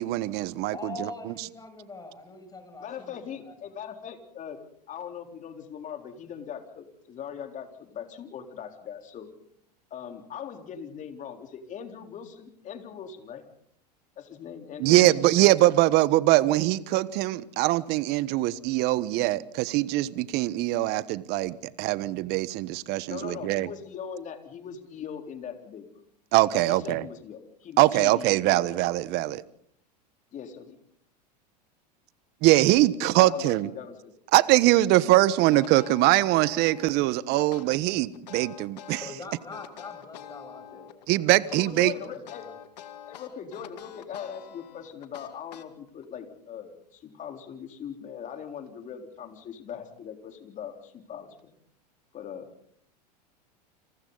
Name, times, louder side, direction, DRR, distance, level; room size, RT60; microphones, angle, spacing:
voice 1, 0.0-1.3 14.8-23.7 26.3-27.0 27.8-29.4 32.4-33.7 34.3-39.0 41.1-41.9, right 17 dB, 50° right, 1.3 m, -22 dB
voice 2, 0.7-3.5 14.8-15.1 39.0-41.0 41.5-42.5, left 3 dB, 20° left, 7.5 m, -43 dB
voice 3, 2.8-4.6 4.9-9.3 9.9-13.4 14.2-15.2 15.5-15.6 23.1-25.9 26.5-28.7 29.2-29.3 30.3-30.6 33.0-34.1 37.3-37.5 40.7-40.9 41.6-42.5 43.1-51.6 52.1-52.5, left 8 dB, 35° left, 3.9 m, -40 dB
sound 1, 35.5-37.1 37.5-39.2 39.5-41.1 41.5-46.1, left 10 dB, 75° left, 2.3 m, -45 dB
29.5 x 27.5 x 4.0 m
hypercardioid pair, 90°, 21 cm